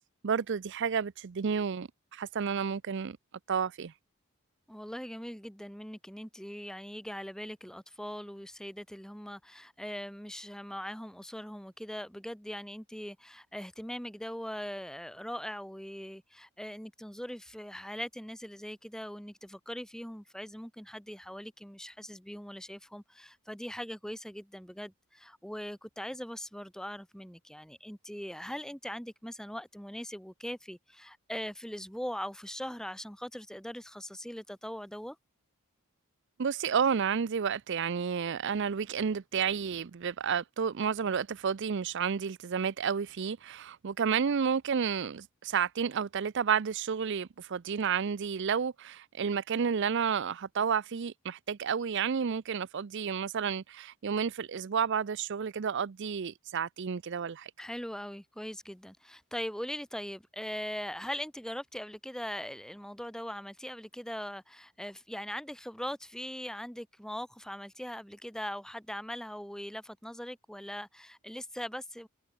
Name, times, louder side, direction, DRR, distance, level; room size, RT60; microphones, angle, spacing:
voice 1, 0.2-3.2 3.5-3.9 36.4-57.5, right 6 dB, 55° right, 0.5 m, -31 dB
voice 2, 4.7-35.2 57.6-72.1, equal, 5° left, 1.6 m, -41 dB
head